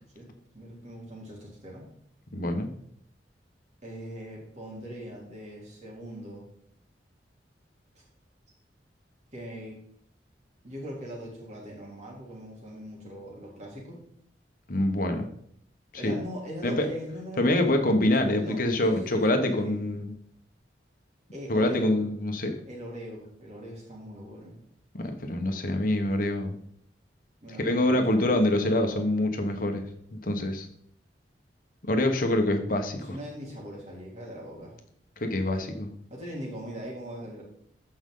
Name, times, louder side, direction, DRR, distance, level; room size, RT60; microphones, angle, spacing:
voice 1, 0.5-1.9 3.8-6.4 7.9-8.0 9.3-9.8 10.6-14.0 16.0-19.7 21.3-22.0 22.6-24.6 27.4-28.0 32.9-34.7 36.1-37.4, equal, 40° right, -2 dB, 3.2 m, -40 dB
voice 2, 2.3-2.7 14.7-15.3 15.9-16.2 16.6-16.9 17.4-20.1 21.5-22.6 24.9-26.6 27.6-29.9 30.1-30.7 31.9-33.2 35.2-35.9, left 1 dB, 50° left, 5 dB, 1.3 m, -25 dB
14.0 x 5.4 x 3.8 m, 0.67 s
head